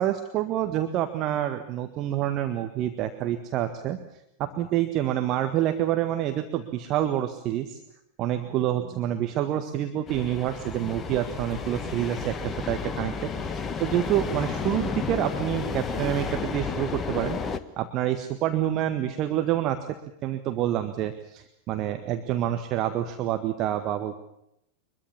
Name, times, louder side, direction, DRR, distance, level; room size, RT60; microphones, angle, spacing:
voice 1, 0.0-4.0 4.4-7.8 8.2-19.8 20.2-24.2, right 12 dB, 35° right, 7 dB, 1.7 m, -27 dB
sound 1, 10.1-17.6, left 5 dB, 20° left, 1.5 m, -32 dB
24.0 x 22.0 x 7.2 m, 0.81 s
figure-of-eight pair, 90°, 0 cm